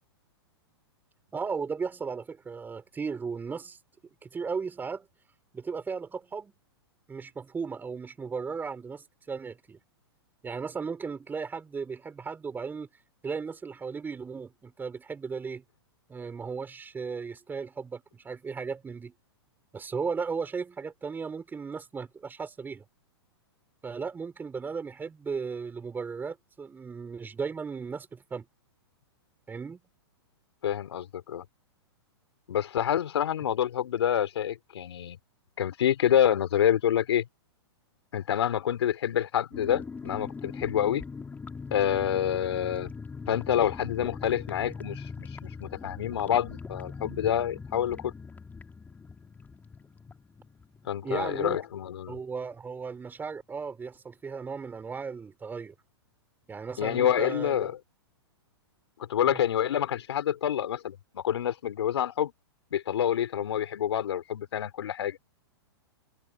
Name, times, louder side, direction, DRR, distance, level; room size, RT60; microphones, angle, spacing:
voice 1, 1.3-3.8 4.2-5.1 5.5-6.5 7.1-9.8 10.4-12.9 13.2-15.6 16.1-19.1 19.7-22.8 23.8-28.5 29.5-29.8 51.0-51.6 52.1-55.7 56.5-57.7 59.3-59.4, right 5 dB, 15° right, 5.2 m, -36 dB
voice 2, 30.6-31.4 32.5-35.2 35.6-37.3 38.1-41.0 41.7-42.9 43.3-48.1 50.8-52.2 56.8-57.8 59.1-62.3 62.7-65.2, left 10 dB, 75° left, 3.3 m, -27 dB
sound 1, 39.5-51.9 52.1-52.2 52.5-52.8, left 5 dB, 10° left, 4.1 m, -42 dB
hypercardioid pair, 125°, 14 cm